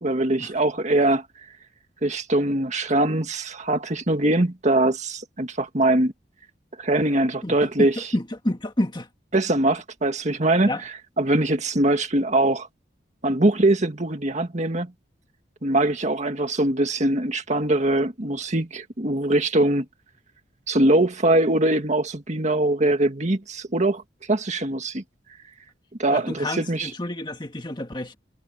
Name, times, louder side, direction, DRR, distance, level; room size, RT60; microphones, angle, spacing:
voice 1, 0.0-1.3 2.0-6.1 6.8-8.1 9.3-12.7 13.2-14.9 15.6-19.9 20.7-24.0 24.3-25.0 26.0-26.9, right 1 dB, 40° right, 1.9 m, -22 dB
voice 2, 7.4-9.1 10.7-10.8 26.1-28.1, left 1 dB, 25° left, 2.0 m, -29 dB
head